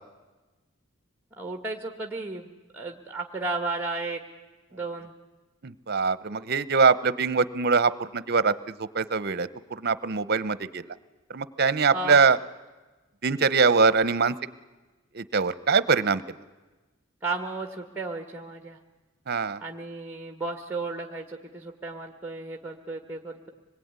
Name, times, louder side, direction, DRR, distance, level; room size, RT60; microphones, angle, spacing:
voice 1, 1.4-4.2 4.7-5.1 11.9-12.2 17.2-18.8 19.6-23.5, right 3 dB, 10° right, 5 dB, 1.6 m, -34 dB
voice 2, 5.6-10.8 11.3-12.4 13.2-14.3 15.1-16.2 19.3-19.6, right 4 dB, 50° right, 17 dB, 0.9 m, -23 dB
25.5 x 21.0 x 9.6 m, 1.2 s
head